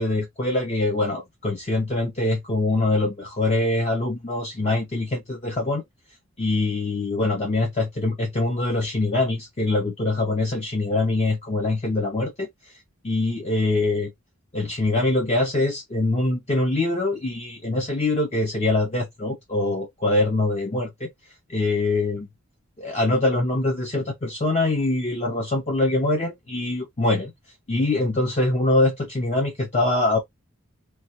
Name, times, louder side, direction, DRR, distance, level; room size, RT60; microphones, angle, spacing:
voice 1, 0.0-5.8 6.4-12.5 13.0-14.1 14.5-21.1 21.5-22.3 22.8-27.3 27.7-30.2, left 2 dB, 30° left, 0.5 m, -23 dB
3.2 x 2.3 x 2.8 m
head